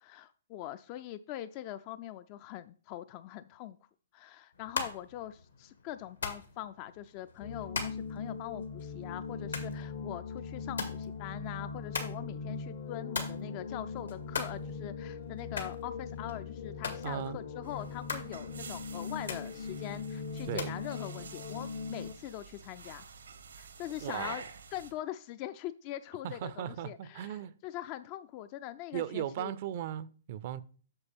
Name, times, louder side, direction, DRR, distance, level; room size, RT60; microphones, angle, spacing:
voice 1, 0.0-3.8 4.1-23.0 23.6-24.4 24.7-29.5, left 13 dB, 35° left, 0.3 m, -42 dB
sound 1, 4.5-20.8, left 4 dB, 85° left, 1.8 m, -43 dB
sound 2, 7.4-22.1, left 4 dB, 55° left, 0.8 m, -40 dB
voice 2, 17.0-17.4 20.5-20.7 24.0-24.4 26.2-27.5 28.9-30.6, right 10 dB, 45° right, 0.5 m, -37 dB
sound 3, 17.6-24.9, right 5 dB, 80° right, 1.0 m, -49 dB
8.8 x 6.6 x 3.5 m
hypercardioid pair, 125°, 0 cm